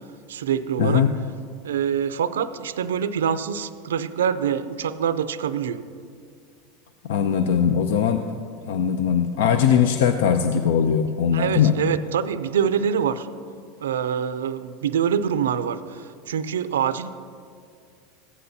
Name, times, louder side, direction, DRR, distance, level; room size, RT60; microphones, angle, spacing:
voice 1, 0.3-1.1 1.6-5.8 11.3-13.3 13.8-17.1, right 8 dB, 85° right, 13 dB, 0.4 m, -25 dB
voice 2, 0.8-1.1 7.1-8.2 8.7-11.8, left 8 dB, 75° left, 8 dB, 0.4 m, -20 dB
15.0 x 9.9 x 2.8 m, 2.2 s
hypercardioid pair, 95°, 0 cm